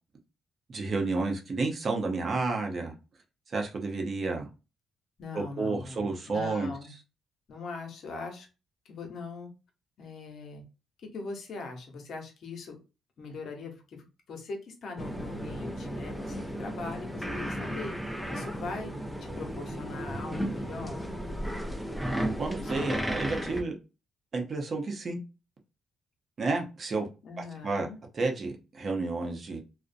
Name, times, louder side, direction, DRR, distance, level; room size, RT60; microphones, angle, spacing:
voice 1, 0.7-2.9 3.5-4.5 5.3-6.7 22.4-23.7 24.3-25.2 26.4-27.1 27.4-27.9 28.1-29.6, right 3 dB, 45° right, 3 dB, 0.6 m, -31 dB
voice 2, 5.2-6.9 7.5-8.5 8.9-9.5 10.0-10.6 11.1-12.8 13.2-18.0 18.3-18.9 19.2-21.1 22.6-23.0 27.2-28.0, left 3 dB, 65° left, 3 dB, 0.8 m, -41 dB
sound 1, 15.0-23.6, equal, 5° right, 0.5 m, -34 dB
2.6 x 2.1 x 2.5 m, 0.30 s
cardioid pair, 90°, 0 cm